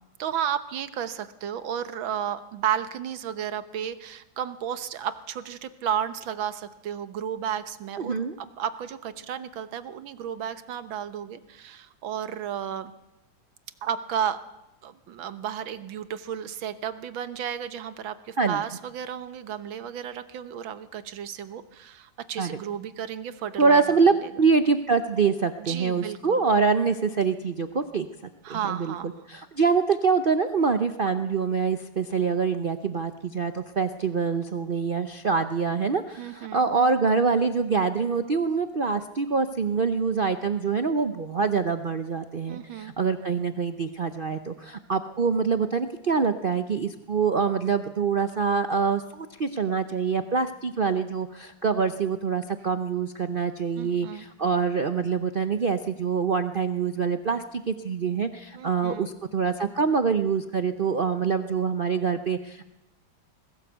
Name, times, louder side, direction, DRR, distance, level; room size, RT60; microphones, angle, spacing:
voice 1, 0.2-12.9 13.8-14.4 14.8-24.3 25.6-26.4 28.4-29.3 36.2-36.7 42.5-42.9 53.8-54.3 58.5-59.1, right 9 dB, 85° right, 12 dB, 1.8 m, -33 dB
voice 2, 8.0-8.4 18.4-18.6 22.4-22.6 23.6-28.1 28.5-28.9 29.3-62.6, right 5 dB, 70° right, 9 dB, 0.5 m, -25 dB
21.0 x 16.0 x 8.0 m, 0.94 s
omnidirectional pair, 2.1 m